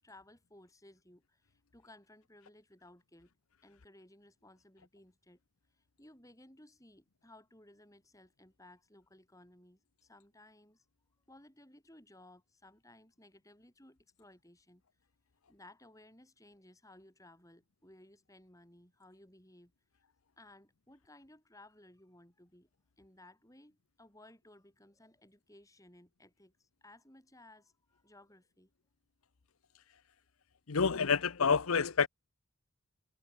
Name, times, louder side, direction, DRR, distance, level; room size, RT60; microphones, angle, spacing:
voice 1, 0.0-3.3 3.6-5.4 6.0-10.8 11.3-14.8 15.5-19.7 20.4-22.7 23.0-28.7, left 1 dB, 15° left, 7.5 m, -59 dB
voice 2, 30.7-32.1, left 5 dB, 80° left, 0.8 m, -28 dB
head